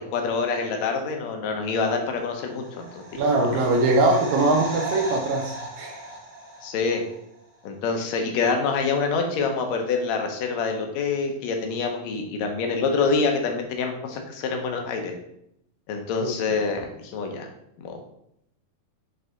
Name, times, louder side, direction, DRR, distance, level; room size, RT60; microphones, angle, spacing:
voice 1, 0.0-2.9 3.5-3.7 6.6-7.0 7.6-15.1 15.9-17.5 17.8-17.9, left 4 dB, 75° left, 3 dB, 1.7 m, -26 dB
sound 1, 2.3-7.2 7.4-7.5, right 1 dB, 55° right, 0.6 m, -36 dB
voice 2, 3.2-6.0 16.2-16.3, right 2 dB, 85° right, 1 dB, 1.6 m, -22 dB
7.9 x 3.4 x 3.8 m, 0.76 s
omnidirectional pair, 4.1 m